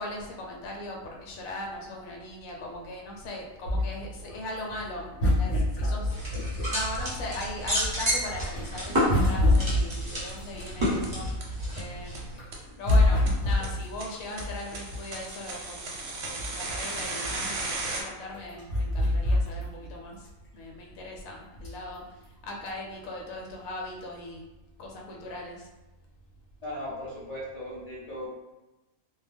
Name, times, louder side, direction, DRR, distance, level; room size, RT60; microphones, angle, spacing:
voice 1, 0.0-12.2 12.5-24.4 24.8-25.7, left 1 dB, 85° left, -1 dB, 1.0 m, -39 dB
sound 1, 3.6-7.4 7.8-11.9 12.3-15.2 15.8-15.9 16.1-20.0 20.3-20.4 21.6-22.0 22.6-22.7, left 1 dB, 60° left, 1.0 m, -26 dB
sound 2, 6.1-12.4, equal, 25° right, 0.8 m, -31 dB
sound 3, 6.9-7.0 7.3-7.4 7.7-7.8 8.1-8.2 8.4-8.5 8.8-8.9 9.2-9.3 9.5-9.6 9.9-10.0 10.3-10.4 10.7-10.8 11.0-11.1 11.4-11.5 11.8-11.9 12.1-12.2 12.5-12.6 12.9-13.0 13.3-13.4 13.6-18.0, right 3 dB, 60° right, 0.8 m, -35 dB
voice 2, 26.6-28.3, left 1 dB, 45° left, -9 dB, 0.5 m, -37 dB
2.2 x 2.2 x 3.2 m, 1.0 s
omnidirectional pair, 1.4 m